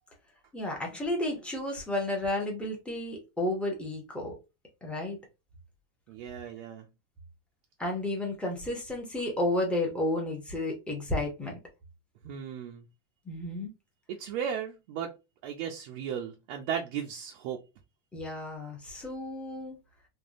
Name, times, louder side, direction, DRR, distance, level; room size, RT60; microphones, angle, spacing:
voice 1, 0.5-4.3 4.8-5.2 7.8-11.6 13.3-13.7 18.1-19.8, left 1 dB, 5° left, 0.7 m, -32 dB
voice 2, 6.1-6.9 12.2-12.8 14.1-15.1 15.4-17.6, right 8 dB, 50° right, 0.5 m, -35 dB
3.5 x 2.2 x 2.5 m
supercardioid pair, 155°, 34 cm